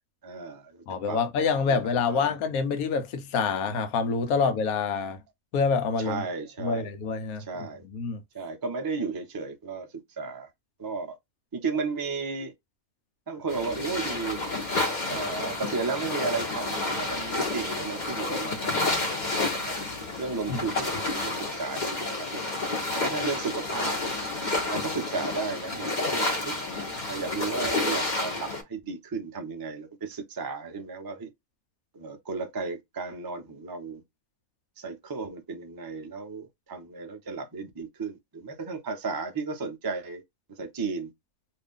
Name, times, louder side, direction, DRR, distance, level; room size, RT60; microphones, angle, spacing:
voice 1, 0.2-1.2 1.7-2.4 6.0-6.9 7.4-7.8 8.3-10.5 10.8-11.2 11.5-12.5 13.3-14.4 15.1-19.0 19.4-19.9 20.2-22.5 22.9-24.1 24.7-26.6 27.1-31.3 31.9-34.0 34.8-40.2 40.5-41.1, right 4 dB, 35° right, 0.3 m, -34 dB
voice 2, 0.9-5.2 5.5-6.2 6.6-7.5 7.9-8.2 20.5-20.6, left 5 dB, 85° left, 1.2 m, -26 dB
sound 1, 13.5-28.6, left 2 dB, 35° left, 1.0 m, -30 dB
2.7 x 2.6 x 3.5 m
omnidirectional pair, 1.5 m